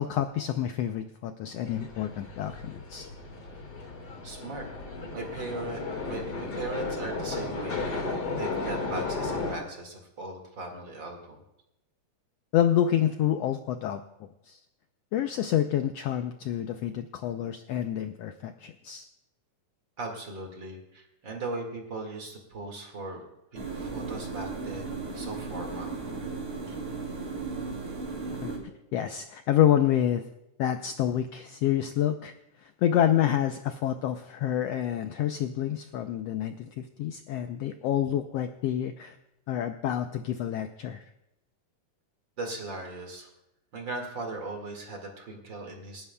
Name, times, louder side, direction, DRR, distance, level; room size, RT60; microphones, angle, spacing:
voice 1, 0.0-3.1 12.5-14.0 14.5-14.6 15.1-19.1 28.4-28.5 28.9-30.3 30.6-32.3 32.6-39.2 39.5-41.0, left 10 dB, 85° left, 8 dB, 1.4 m, -28 dB
sound 1, 1.6-9.5, left 3 dB, 35° left, 2.1 m, -34 dB
voice 2, 4.2-4.7 5.1-7.9 8.4-11.4 20.0-23.3 23.7-26.0 42.4-43.3 43.7-46.1, right 2 dB, 40° right, 2 dB, 2.4 m, -38 dB
sound 2, 23.5-28.6, right 4 dB, 60° right, 3.9 m, -36 dB
28.5 x 11.0 x 2.3 m, 0.90 s
omnidirectional pair, 3.5 m